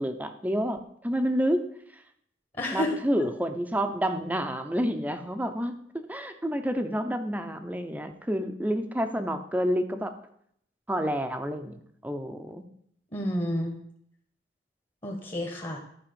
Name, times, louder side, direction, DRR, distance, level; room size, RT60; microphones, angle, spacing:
voice 1, 0.0-1.6 2.7-5.8 6.1-10.1 10.9-12.6, equal, 10° right, 7 dB, 0.7 m, -29 dB
voice 2, 2.6-3.3 13.1-13.8 15.0-15.8, left 1 dB, 30° left, 1 dB, 1.4 m, -30 dB
12.0 x 4.9 x 7.0 m, 0.68 s
head